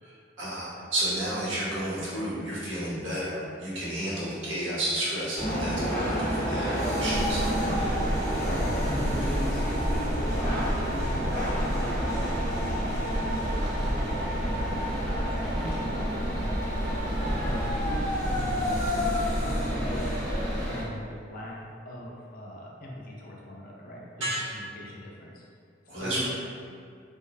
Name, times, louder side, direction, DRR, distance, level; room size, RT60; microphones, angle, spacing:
voice 1, 0.0-7.9 24.2-24.5 25.9-26.3, right 1 dB, 75° right, -8 dB, 0.8 m, -32 dB
sound 1, 5.3-20.8, equal, 20° left, 0.7 m, -30 dB
Rain, 7.1-20.7, equal, 25° right, 0.4 m, -31 dB
voice 2, 8.4-13.1 13.5-16.9 17.4-20.3 20.7-21.6 21.8-25.4 25.9-26.3, equal, 45° left, -3 dB, 0.4 m, -40 dB
2.6 x 2.0 x 2.3 m, 2.3 s
head